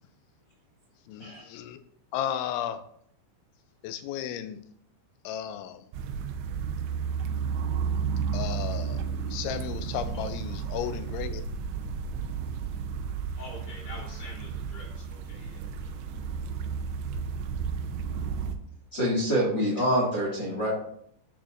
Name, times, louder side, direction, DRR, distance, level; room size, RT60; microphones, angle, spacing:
voice 1, 1.1-1.8 2.1-2.8 3.8-4.6 5.2-5.8 8.3-9.0 9.3-11.4, left 10 dB, 85° left, 10 dB, 2.8 m, -34 dB
sound 1, 5.9-18.5, right 6 dB, 80° right, 2.7 m, -32 dB
voice 2, 13.4-16.0, left 2 dB, 25° left, -3 dB, 3.1 m, -46 dB
voice 3, 18.9-20.7, equal, 45° left, -3 dB, 1.4 m, -26 dB
11.5 x 8.9 x 2.5 m, 0.68 s
omnidirectional pair, 5.6 m